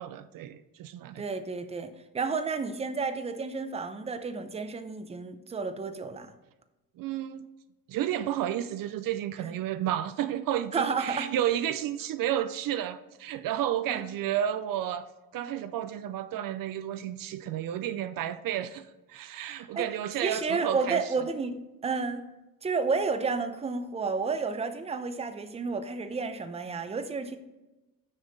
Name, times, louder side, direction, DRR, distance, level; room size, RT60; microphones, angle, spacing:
voice 1, 0.0-1.2 7.0-7.5 7.9-15.1 15.3-21.0, right 11 dB, 65° right, 0.5 m, -31 dB
voice 2, 1.2-6.3 10.7-11.3 13.9-14.0 19.7-19.9 20.2-21.6 21.8-22.2 22.6-27.4, right 4 dB, 20° right, 0.6 m, -31 dB
6.4 x 6.2 x 3.9 m
cardioid pair, 120°, 36 cm